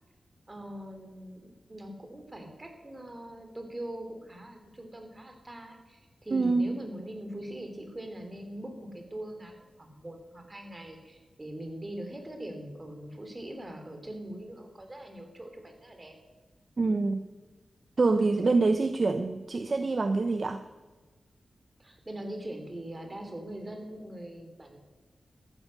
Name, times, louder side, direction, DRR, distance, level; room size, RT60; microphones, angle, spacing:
voice 1, 0.5-16.2 21.8-24.8, right 1 dB, 25° right, 4 dB, 2.9 m, -42 dB
voice 2, 6.3-6.7 16.8-17.2 18.0-20.6, right 3 dB, 45° right, 9 dB, 0.7 m, -25 dB
14.0 x 11.0 x 6.4 m, 1.3 s
wide cardioid pair, 105°, 0 cm